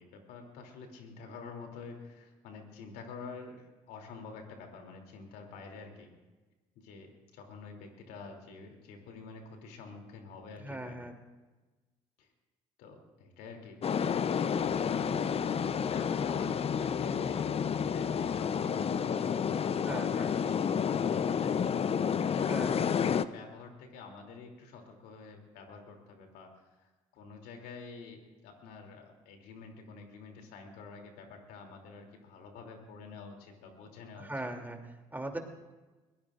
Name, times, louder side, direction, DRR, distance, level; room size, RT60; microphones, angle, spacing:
voice 1, 0.0-6.1 6.7-11.0 12.2-12.3 12.8-14.2 14.5-20.6 20.9-34.3, left 4 dB, 75° left, 2 dB, 3.0 m, -47 dB
voice 2, 10.6-11.2 19.8-20.3 22.3-22.9 34.1-35.4, right 1 dB, 10° right, 3 dB, 2.9 m, -40 dB
sound 1, 13.8-23.2, left 7 dB, 40° left, 0.6 m, -30 dB
22.0 x 18.5 x 2.5 m, 1.2 s
hypercardioid pair, 60°, 16 cm